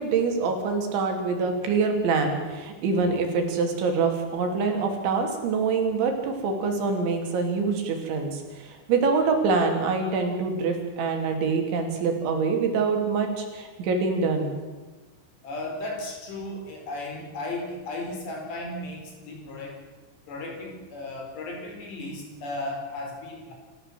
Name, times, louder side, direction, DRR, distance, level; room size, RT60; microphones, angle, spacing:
voice 1, 0.0-14.6, right 4 dB, 80° right, 3 dB, 5.3 m, -25 dB
voice 2, 15.4-19.8 20.3-23.5, left 2 dB, 65° left, 2 dB, 6.7 m, -35 dB
27.5 x 15.0 x 7.6 m, 1.3 s
omnidirectional pair, 5.2 m